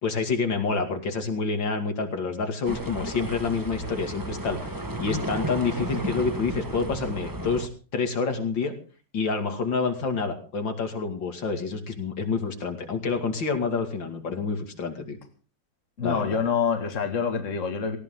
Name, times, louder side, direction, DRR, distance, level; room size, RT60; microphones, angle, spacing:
voice 1, 0.0-8.7 9.1-15.2 16.0-16.4, left 4 dB, 85° left, 5 dB, 3.1 m, -28 dB
sound 1, 2.6-7.7, right 2 dB, 15° right, 1.1 m, -33 dB
voice 2, 16.0-18.0, left 6 dB, 45° left, 5 dB, 2.2 m, -26 dB
18.0 x 17.0 x 3.8 m, 0.38 s
omnidirectional pair, 2.0 m